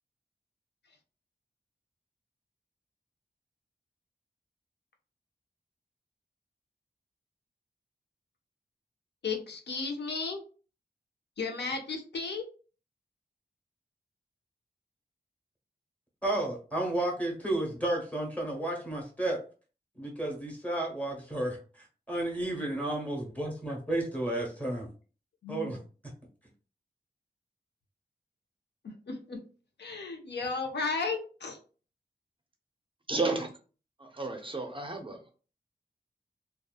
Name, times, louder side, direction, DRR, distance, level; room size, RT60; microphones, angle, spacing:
voice 1, 9.2-10.4 11.4-12.4 25.4-25.8 28.8-29.4 29.8-31.6, left 4 dB, 80° left, 4 dB, 0.5 m, -34 dB
voice 2, 16.2-19.4 20.0-24.9 25.5-25.8, right 1 dB, 10° left, -1 dB, 1.0 m, -32 dB
voice 3, 33.1-33.5 34.0-35.3, right 3 dB, 30° right, 4 dB, 0.4 m, -32 dB
2.7 x 2.2 x 2.3 m, 0.38 s
wide cardioid pair, 80°, 17 cm